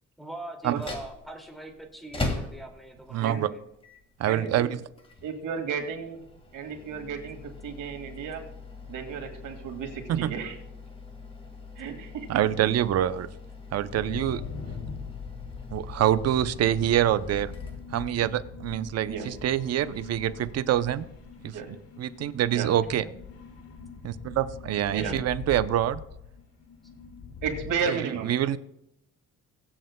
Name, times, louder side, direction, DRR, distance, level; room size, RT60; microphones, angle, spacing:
voice 1, 0.2-3.6 22.8-23.2 25.0-25.3, right 2 dB, ahead, 2 dB, 2.2 m, -42 dB
sound 1, 0.6-18.4, left 3 dB, 20° left, 1.8 m, -41 dB
voice 2, 3.1-3.5 4.2-4.8 10.1-10.3 12.3-13.3 13.7-14.4 15.7-17.5 17.9-21.1 21.4-23.0 24.0-26.0 27.9-28.6, right 11 dB, 55° right, 13 dB, 0.6 m, -26 dB
voice 3, 4.3-4.7 5.2-6.2 6.5-7.4 7.6-8.4 8.9-10.6 11.8-12.7 19.1-19.3 21.5-21.7 22.5-22.7 24.9-25.1 27.4-28.3, right 6 dB, 90° right, 3 dB, 2.2 m, -33 dB
sound 2, 13.9-27.8, left 5 dB, 50° left, 2.1 m, -42 dB
23.5 x 7.9 x 2.2 m, 0.81 s
cardioid pair, 125°, 30 cm